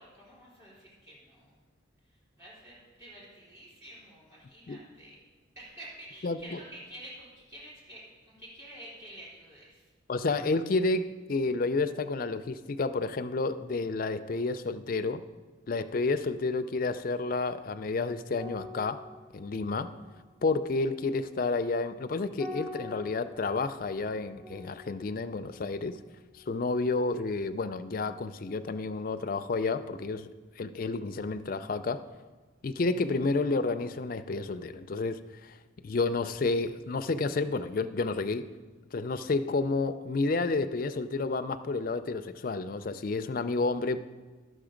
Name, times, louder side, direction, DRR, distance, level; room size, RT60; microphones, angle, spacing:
voice 1, 0.0-1.5 2.1-5.2 5.6-9.9, right 1 dB, 20° right, -7 dB, 3.5 m, -49 dB
voice 2, 6.2-6.6 10.1-15.2 15.7-19.0 19.3-19.9 20.4-26.0 26.3-30.3 30.6-32.0 32.6-35.6 35.8-38.5 38.9-44.0, left 3 dB, 45° left, 10 dB, 0.4 m, -30 dB
sound 1, 18.3-27.0 27.3-27.6, left 2 dB, 45° right, 3.4 m, -47 dB
11.5 x 6.4 x 5.0 m, 1.4 s
head